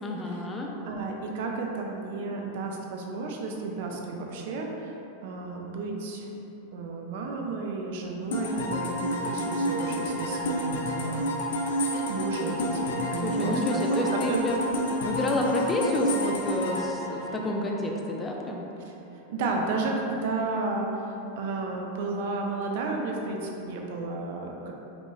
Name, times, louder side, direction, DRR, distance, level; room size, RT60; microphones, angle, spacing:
voice 1, 0.0-0.7 13.2-14.6 15.0-18.6, left 1 dB, 15° left, 0 dB, 0.4 m, -29 dB
voice 2, 0.9-4.9 5.2-6.3 6.7-11.2 12.1-14.4 19.3-21.1 21.4-24.7, right 3 dB, 65° right, 1 dB, 0.5 m, -32 dB
sound 1, 8.3-18.0, equal, 80° left, 0.5 m, -30 dB
5.1 x 2.3 x 3.1 m, 3.0 s
supercardioid pair, 140°, 0 cm